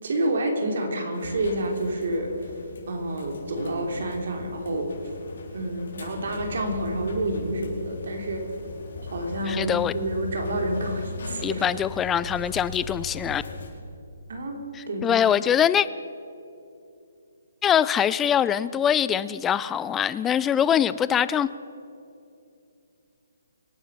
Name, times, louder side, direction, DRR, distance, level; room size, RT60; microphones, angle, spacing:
voice 1, 0.0-2.5 2.9-4.9 5.5-8.4 9.1-11.6 14.3-15.2, right 1 dB, 65° right, 3 dB, 3.2 m, -29 dB
sound 1, 1.1-13.7, left 3 dB, 70° left, 4.3 m, -38 dB
voice 2, 9.5-9.9 11.4-13.4 14.8-15.9 17.6-21.5, left 9 dB, 10° left, 16 dB, 0.4 m, -23 dB
24.5 x 9.2 x 5.8 m, 2.6 s
hypercardioid pair, 155°, 0 cm